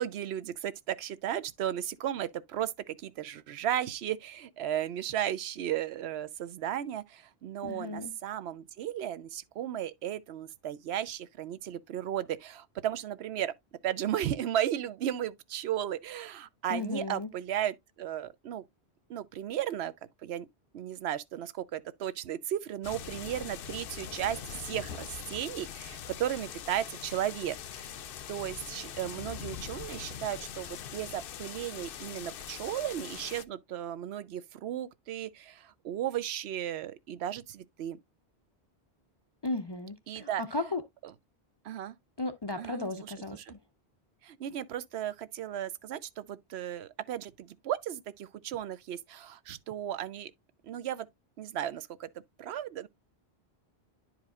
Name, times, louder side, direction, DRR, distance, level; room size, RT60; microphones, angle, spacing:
voice 1, 0.0-13.5 13.8-18.6 19.1-19.9 20.2-20.5 20.7-28.0 28.3-38.0 40.1-40.4 41.0-41.1 41.6-42.0 42.5-43.5 44.2-50.3 50.6-51.1 51.4-52.1 52.4-52.9, right 11 dB, 80° right, 0.8 m, -35 dB
voice 2, 7.6-8.1 16.7-17.3 39.4-40.8 42.2-43.6, left 2 dB, 35° left, 0.4 m, -35 dB
sound 1, 22.8-33.4, left 8 dB, 65° left, 0.7 m, -42 dB
10.5 x 4.8 x 2.4 m
omnidirectional pair, 1.1 m